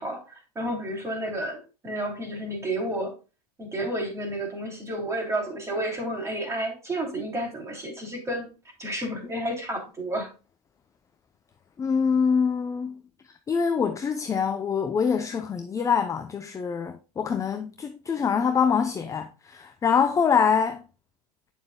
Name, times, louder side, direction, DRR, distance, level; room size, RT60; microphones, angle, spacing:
voice 1, 0.0-3.1 3.6-8.5 8.8-10.3, right 1 dB, 15° right, 3.0 m, -31 dB
voice 2, 11.8-13.0 13.5-20.8, left 6 dB, 15° left, 0.6 m, -24 dB
8.9 x 6.9 x 2.2 m
hypercardioid pair, 110°, 21 cm